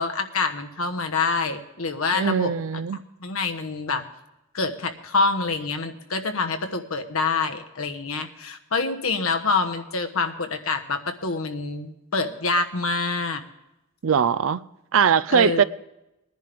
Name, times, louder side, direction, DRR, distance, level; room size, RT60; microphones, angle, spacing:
voice 1, 0.0-2.5 3.2-4.0 4.5-13.4 15.3-15.6, left 3 dB, 80° left, 1.2 m, -26 dB
voice 2, 2.1-3.0 14.0-14.6 14.9-15.6, right 7 dB, 70° right, 0.5 m, -21 dB
20.5 x 11.0 x 3.5 m
head